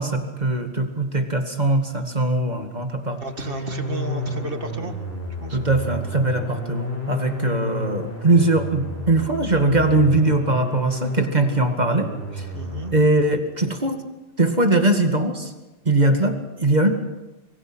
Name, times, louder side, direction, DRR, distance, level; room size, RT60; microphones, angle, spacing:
voice 1, 0.0-3.2 5.5-12.5 12.9-14.0 14.4-15.5 15.9-16.9, right 2 dB, 45° right, 5 dB, 2.2 m, -21 dB
sound 1, 2.9-12.9, left 1 dB, 75° left, 5.9 m, -31 dB
voice 2, 3.2-4.9 5.4-5.6 12.5-12.9, right 3 dB, 60° right, 6 dB, 2.4 m, -32 dB
26.0 x 24.5 x 6.2 m, 1.1 s
omnidirectional pair, 1.1 m